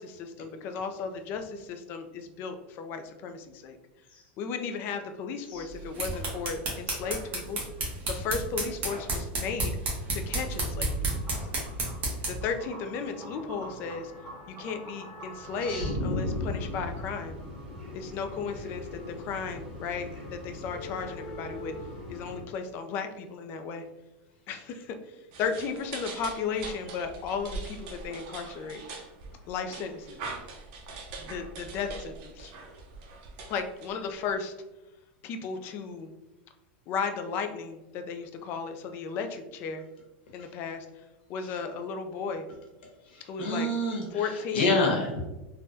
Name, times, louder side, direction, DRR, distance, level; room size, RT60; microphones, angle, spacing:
voice 1, 0.0-3.8 4.4-7.7 8.1-9.8 10.1-11.2 12.3-14.1 14.5-17.4 17.9-21.7 22.1-23.8 24.5-28.8 29.5-30.3 31.2-32.5 33.5-34.5 35.2-36.1 36.9-39.8 40.3-40.9 41.3-42.5 43.3-43.7 44.1-44.8, left 5 dB, 35° left, 6 dB, 0.3 m, -35 dB
sound 1, 5.7-12.5, right 2 dB, 30° right, 0.9 m, -32 dB
sound 2, 10.8-22.4, left 1 dB, 5° right, 1.2 m, -39 dB
sound 3, 25.3-34.3, right 3 dB, 50° right, 0.6 m, -42 dB
voice 2, 43.4-44.0 44.5-45.3, left 2 dB, 75° left, 0 dB, 1.0 m, -26 dB
3.4 x 2.2 x 2.6 m, 1.0 s
supercardioid pair, 150°, 6 cm